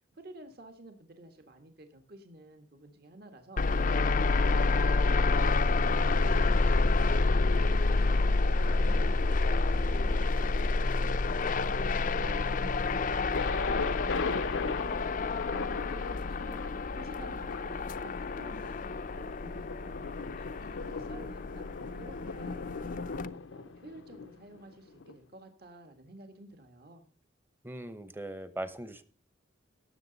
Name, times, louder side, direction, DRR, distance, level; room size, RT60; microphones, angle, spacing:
voice 1, 0.2-3.6 3.9-5.5 5.8-11.1 11.5-15.1 15.5-16.6 16.9-20.0 20.4-21.6 21.9-23.2 23.5-27.0, right 1 dB, 50° right, 6 dB, 1.7 m, -51 dB
sound 1, 3.6-23.3, left 3 dB, 45° left, 0.5 m, -28 dB
Thunder, 13.3-25.1, left 4 dB, 80° left, 0.7 m, -39 dB
voice 2, 27.6-29.0, right 1 dB, 10° right, 12 dB, 0.9 m, -39 dB
17.0 x 7.7 x 4.1 m, 0.44 s
head